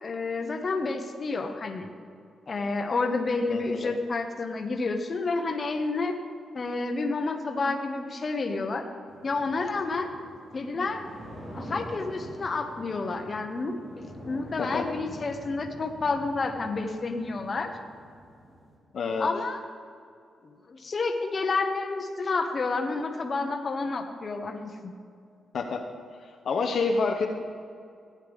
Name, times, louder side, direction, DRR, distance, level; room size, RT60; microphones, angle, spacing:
voice 1, 0.0-1.9 2.5-6.1 6.5-8.9 9.2-10.1 10.5-11.0 11.5-17.7 19.2-19.6 20.7-24.9, left 3 dB, 35° left, 4 dB, 1.0 m, -30 dB
voice 2, 3.5-4.0 14.6-14.8 18.9-19.3 25.5-25.8 26.2-27.3, left 4 dB, 60° left, 2 dB, 0.8 m, -28 dB
sound 1, 9.1-18.8, equal, 30° right, 3.3 m, -45 dB
15.5 x 9.8 x 3.6 m, 2.4 s
cardioid pair, 130°, 0 cm